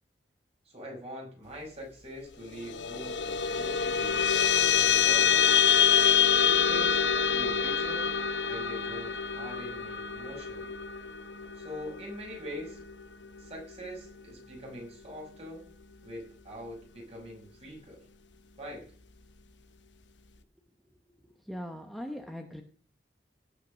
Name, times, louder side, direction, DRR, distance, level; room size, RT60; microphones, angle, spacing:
voice 1, 0.6-4.2 4.6-5.5 6.1-7.0 7.3-8.1 8.5-10.7 11.5-12.8 13.4-15.6 16.0-18.0 18.6-18.9, equal, 35° right, -1 dB, 5.9 m, -43 dB
sound 1, 2.5-13.3, left 7 dB, 85° left, 1.0 m, -26 dB
voice 2, 21.5-22.6, equal, ahead, 4 dB, 0.9 m, -39 dB
17.5 x 6.0 x 6.2 m, 0.43 s
head